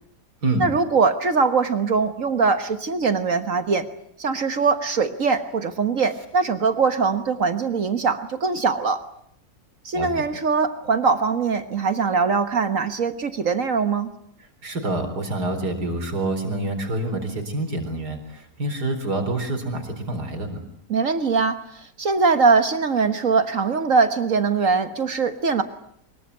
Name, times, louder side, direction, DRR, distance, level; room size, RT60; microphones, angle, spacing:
voice 1, 0.6-3.9 4.2-9.0 9.8-14.1 20.9-25.6, right 4 dB, 55° right, 10 dB, 1.7 m, -22 dB
voice 2, 14.6-20.6, right 2 dB, 85° right, 5 dB, 4.7 m, -27 dB
24.0 x 22.5 x 9.5 m, 0.68 s
omnidirectional pair, 1.7 m